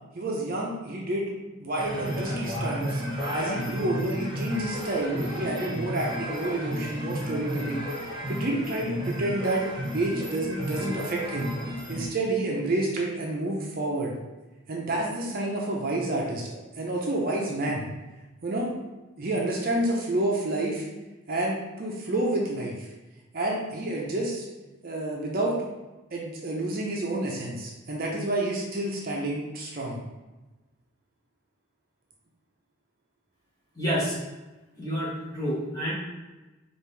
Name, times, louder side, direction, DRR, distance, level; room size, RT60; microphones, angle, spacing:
voice 1, 0.2-1.3 1.6-3.0 3.3-9.6 9.9-11.5 11.9-14.1 14.7-17.9 18.4-18.7 19.2-20.9 21.3-22.9 23.3-24.4 24.8-25.6 26.1-30.0, right 1 dB, 45° right, -2 dB, 0.6 m, -29 dB
sound 1, 1.7-12.1, equal, 20° right, 1.0 m, -32 dB
voice 2, 33.7-34.2 34.7-35.9, equal, 15° left, -8 dB, 1.3 m, -29 dB
5.0 x 2.6 x 3.2 m, 1.1 s
head